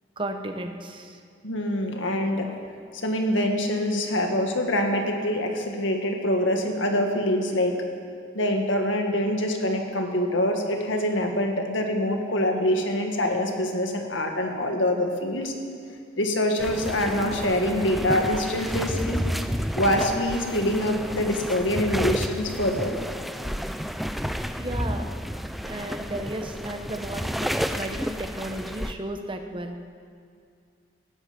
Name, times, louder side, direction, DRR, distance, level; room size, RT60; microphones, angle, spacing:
voice 1, 0.2-1.2 24.6-25.1 25.6-29.8, right 1 dB, 25° right, 5 dB, 1.1 m, -34 dB
voice 2, 1.4-2.5 2.9-7.8 8.3-15.5 16.2-19.2 19.8-23.0, left 1 dB, 85° left, 3 dB, 1.9 m, -25 dB
sound 1, 16.6-28.9, equal, ahead, 0.4 m, -31 dB
19.0 x 14.0 x 5.3 m, 2.3 s
head